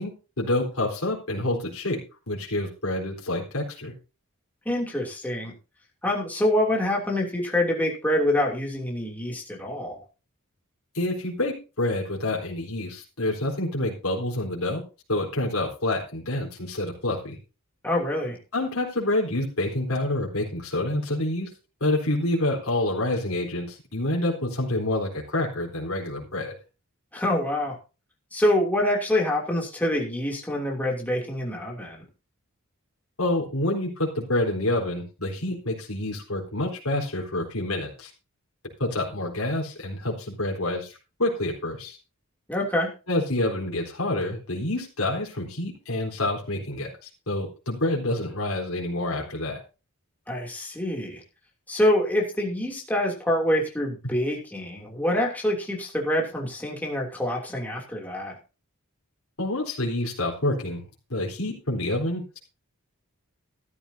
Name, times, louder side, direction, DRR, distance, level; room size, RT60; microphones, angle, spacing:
voice 1, 0.0-2.0 2.3-3.9 10.9-14.8 15.1-17.4 18.5-21.5 21.8-26.5 33.2-38.1 38.8-42.0 43.1-49.6 59.4-60.8 61.1-62.4, left 1 dB, 75° left, -1 dB, 4.0 m, -27 dB
voice 2, 4.6-5.5 6.0-10.0 17.8-18.4 27.1-27.8 28.3-32.0 42.5-42.9 50.3-51.2 51.7-58.3, left 1 dB, 10° left, -2 dB, 2.9 m, -26 dB
14.0 x 12.5 x 2.8 m, 0.32 s
head